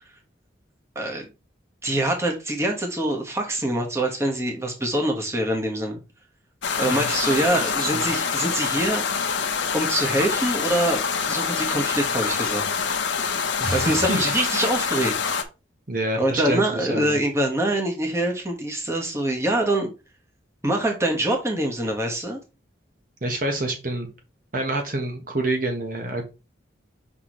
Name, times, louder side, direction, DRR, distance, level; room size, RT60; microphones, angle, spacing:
voice 1, 0.9-1.3 1.8-6.0 6.8-9.0 9.7-11.0 11.3-12.7 13.7-15.1 16.2-19.9 20.6-22.4, right 1 dB, 15° right, 1.4 m, -24 dB
sound 1, 6.6-15.4, left 6 dB, 75° left, 1.0 m, -26 dB
voice 2, 6.8-7.4 7.8-8.0 13.6-14.2 15.9-17.2 23.2-24.1 24.5-26.2, right 2 dB, 45° right, 1.2 m, -27 dB
6.0 x 5.8 x 3.1 m
head